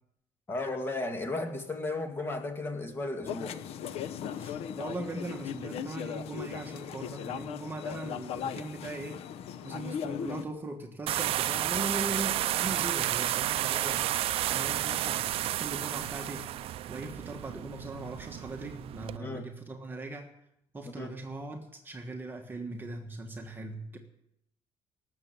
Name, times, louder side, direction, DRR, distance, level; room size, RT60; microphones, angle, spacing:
voice 1, 0.5-3.6 19.2-19.5 21.0-21.1, left 2 dB, 20° left, 4 dB, 2.1 m, -34 dB
sound 1, 3.3-10.4, left 8 dB, 70° left, 0.8 m, -38 dB
voice 2, 4.3-9.2 9.6-14.1 14.5-15.2 15.5-16.5 16.9-20.3 20.7-24.0, right 2 dB, 20° right, 3 dB, 1.4 m, -39 dB
sound 2, 11.1-19.2, right 13 dB, 65° right, 0.5 m, -31 dB
18.5 x 7.5 x 8.3 m, 0.77 s
cardioid pair, 165°, 11 cm